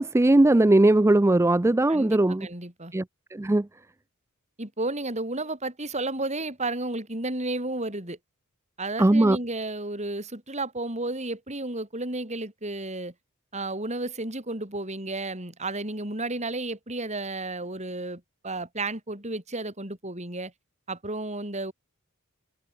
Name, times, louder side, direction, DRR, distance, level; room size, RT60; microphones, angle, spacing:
voice 1, 0.0-2.5 2.9-3.0 3.3-3.7 9.0-9.4, right 1 dB, 10° right, 0.4 m, -19 dB
voice 2, 1.9-2.9 4.6-8.2 8.8-13.1 13.5-20.5 20.9-21.7, right 2 dB, 30° right, 6.6 m, -32 dB
head